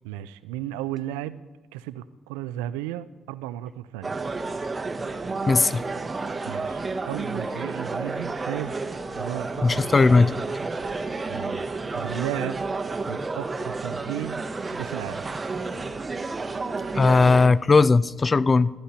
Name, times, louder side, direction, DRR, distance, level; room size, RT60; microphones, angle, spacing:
voice 1, 0.0-1.4 1.7-4.1 6.5-8.8 9.1-9.8 11.3-11.6 11.9-12.6 13.1-15.2, right 13 dB, 85° right, 16 dB, 0.3 m, -34 dB
sound 1, 4.0-17.5, right 3 dB, 30° right, 0.7 m, -31 dB
voice 2, 5.5-5.8 9.6-10.3 16.9-18.7, left 4 dB, 35° left, 18 dB, 0.3 m, -18 dB
15.0 x 10.0 x 2.8 m, 1.2 s
hypercardioid pair, 55°, 0 cm